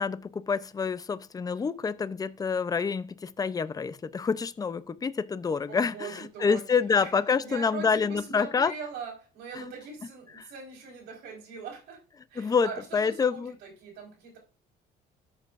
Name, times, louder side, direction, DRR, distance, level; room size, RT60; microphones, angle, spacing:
voice 1, 0.0-8.7 9.6-9.7 12.4-13.5, left 5 dB, 20° left, 0.6 m, -27 dB
voice 2, 5.7-6.7 7.0-7.1 7.4-12.0 12.3-14.4, right 5 dB, 80° right, 4.9 m, -41 dB
13.0 x 7.3 x 2.6 m
cardioid pair, 110°, 17 cm